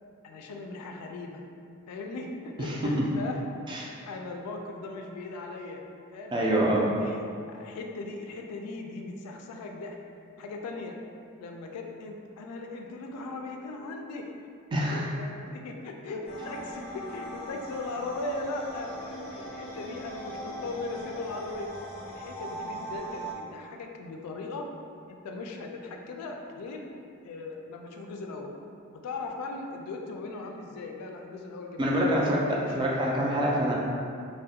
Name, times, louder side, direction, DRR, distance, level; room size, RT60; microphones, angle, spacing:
voice 1, 0.2-1.4 1.9-3.4 4.1-5.8 6.1-6.4 7.0-7.2 7.5-10.0 10.4-11.0 11.4-14.3 14.7-21.7 22.1-24.7 25.1-26.9 27.2-28.5 28.9-32.0 32.3-33.1, left 3 dB, 85° left, 2 dB, 0.3 m, -38 dB
voice 2, 6.3-6.9 14.7-15.1 31.8-32.4 32.7-33.7, right 1 dB, 20° right, -4 dB, 0.3 m, -25 dB
sound 1, 16.3-23.3, right 1 dB, 25° left, 0.6 m, -40 dB
2.3 x 2.1 x 2.7 m, 2.4 s
head